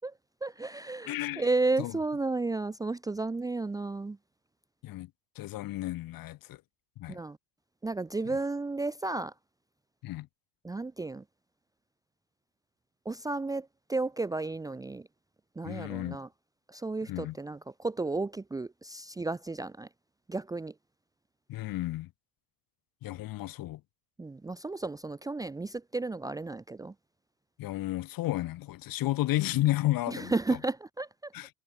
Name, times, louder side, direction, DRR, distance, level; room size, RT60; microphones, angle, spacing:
voice 1, 0.4-4.2 7.1-7.4 7.8-9.3 10.6-11.2 13.0-15.1 15.6-16.3 16.7-19.9 20.3-20.7 24.2-26.9 30.1-31.3, right 3 dB, 10° right, 0.8 m, -33 dB
voice 2, 1.1-1.4 1.8-1.9 4.8-5.1 5.4-6.6 7.0-7.2 10.0-10.3 15.6-16.2 17.1-17.3 21.5-22.1 23.0-23.8 27.6-30.3 31.3-31.5, left 16 dB, 55° left, 4.5 m, -32 dB
cardioid pair, 150°, 40 cm